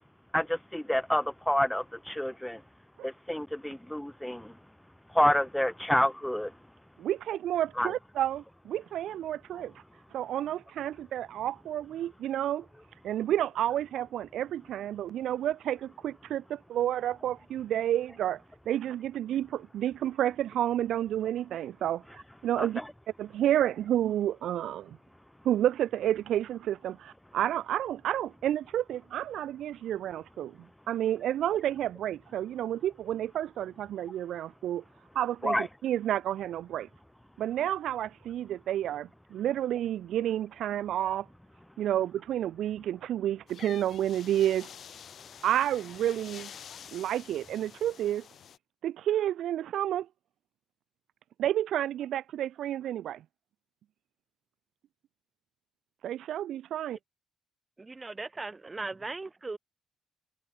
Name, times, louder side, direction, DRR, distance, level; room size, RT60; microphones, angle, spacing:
voice 1, 0.3-2.6 3.0-4.5 5.1-6.5 7.8-7.9 22.6-22.7 35.4-35.7, left 1 dB, 5° left, 0.3 m, -28 dB
voice 2, 7.0-9.8 10.1-12.6 13.0-22.8 23.2-25.0 25.4-30.5 30.9-34.8 35.1-36.9 37.4-41.3 41.8-44.7 45.4-46.5 46.9-48.3 48.8-50.1 51.4-53.2 56.0-57.0, right 11 dB, 75° right, 0.8 m, -30 dB
sound 1, 43.5-48.6, left 8 dB, 60° left, 1.4 m, -48 dB
voice 3, 57.8-59.6, right 3 dB, 25° right, 1.6 m, -38 dB
cardioid pair, 90°, 0 cm